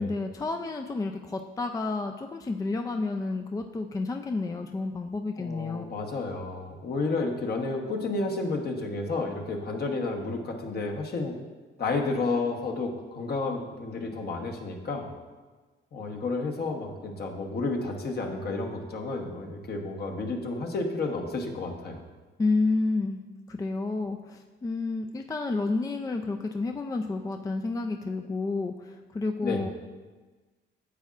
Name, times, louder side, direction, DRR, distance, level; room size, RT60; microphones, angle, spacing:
voice 1, 0.0-5.8 22.4-23.2 23.5-29.7, left 3 dB, 20° left, 5 dB, 0.4 m, -30 dB
voice 2, 5.4-11.4 11.8-15.1 15.9-22.0 29.4-29.6, left 3 dB, 55° left, 1 dB, 1.1 m, -31 dB
9.6 x 7.3 x 2.5 m, 1.3 s
cardioid pair, 90°, 20 cm